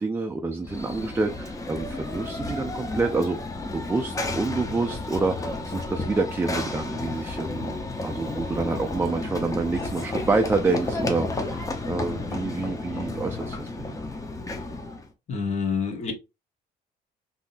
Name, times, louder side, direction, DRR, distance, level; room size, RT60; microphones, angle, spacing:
voice 1, 0.0-3.4 3.7-14.0, right 3 dB, 15° right, 0.4 m, -28 dB
Run / Train, 0.6-15.1, left 2 dB, 20° left, 0.7 m, -32 dB
voice 2, 15.3-16.1, left 5 dB, 40° left, 1.1 m, -27 dB
3.6 x 2.7 x 2.5 m
cardioid pair, 110°, 17 cm